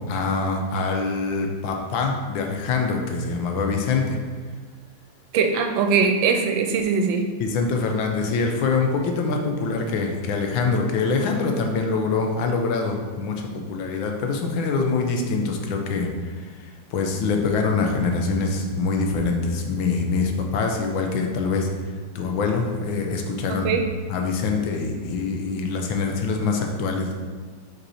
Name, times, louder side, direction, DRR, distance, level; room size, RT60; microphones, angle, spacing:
voice 1, 0.1-4.2 7.4-16.1 16.4-16.5 16.9-21.7 22.1-23.8 24.1-27.1, left 4 dB, 90° left, 2 dB, 1.5 m, -24 dB
voice 2, 5.3-7.3 23.5-23.9, right 5 dB, 85° right, 5 dB, 1.4 m, -21 dB
5.3 x 4.6 x 4.2 m, 1.6 s
omnidirectional pair, 2.1 m